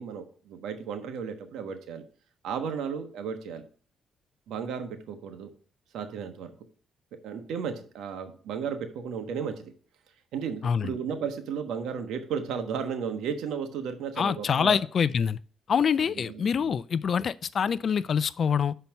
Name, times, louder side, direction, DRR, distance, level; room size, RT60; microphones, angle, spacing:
voice 1, 0.0-2.0 2.4-3.6 4.5-5.5 5.9-6.5 7.2-9.7 10.3-14.8 16.1-16.8, right 6 dB, 85° right, 1.2 m, -34 dB
voice 2, 14.2-15.4 15.7-18.7, left 7 dB, 50° left, 0.4 m, -25 dB
6.1 x 5.6 x 5.4 m
cardioid pair, 90°, 0 cm